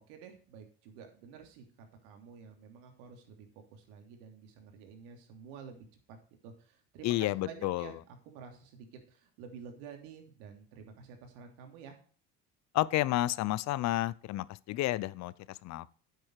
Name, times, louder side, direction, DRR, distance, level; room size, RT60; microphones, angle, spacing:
voice 1, 0.0-1.6 2.0-6.2 6.4-12.0, right 6 dB, 80° right, 3.1 m, -50 dB
voice 2, 7.0-7.9 12.7-15.9, left 16 dB, 55° left, 0.7 m, -31 dB
9.8 x 7.8 x 4.7 m
supercardioid pair, 105°, 33 cm